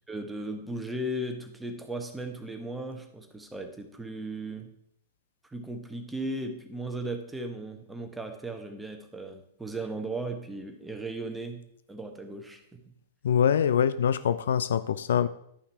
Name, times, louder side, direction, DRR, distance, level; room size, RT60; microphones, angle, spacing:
voice 1, 0.1-4.7 5.4-11.6 11.9-12.9, right 1 dB, 5° right, 5 dB, 1.3 m, -36 dB
voice 2, 13.2-15.3, left 8 dB, 65° left, 14 dB, 0.4 m, -24 dB
11.5 x 5.7 x 4.4 m, 0.71 s
figure-of-eight pair, 105°, 0 cm